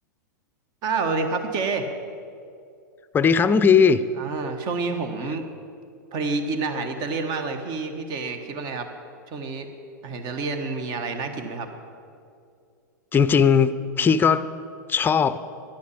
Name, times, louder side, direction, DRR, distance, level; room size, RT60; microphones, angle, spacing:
voice 1, 0.8-1.9 4.2-5.4 6.1-8.9 9.3-9.7 10.0-11.7, right 4 dB, 45° right, 7 dB, 1.5 m, -28 dB
voice 2, 3.1-4.0 13.1-14.5 14.9-15.4, left 6 dB, 20° left, 14 dB, 0.6 m, -18 dB
11.5 x 9.4 x 8.6 m, 2.4 s
hypercardioid pair, 100°, 10 cm